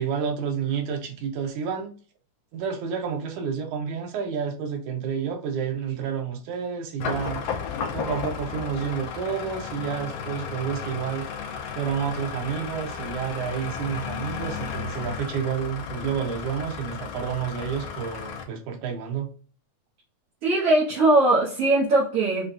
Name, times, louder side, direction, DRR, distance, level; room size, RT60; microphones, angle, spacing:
voice 1, 0.0-1.9 2.5-7.4 7.9-11.3 11.8-19.3, right 7 dB, 90° right, 2.3 m, -30 dB
sound 1, 7.0-18.4, left 6 dB, 75° left, 1.6 m, -34 dB
voice 2, 20.4-22.5, right 2 dB, 65° right, 1.7 m, -20 dB
5.7 x 2.3 x 2.5 m
omnidirectional pair, 3.3 m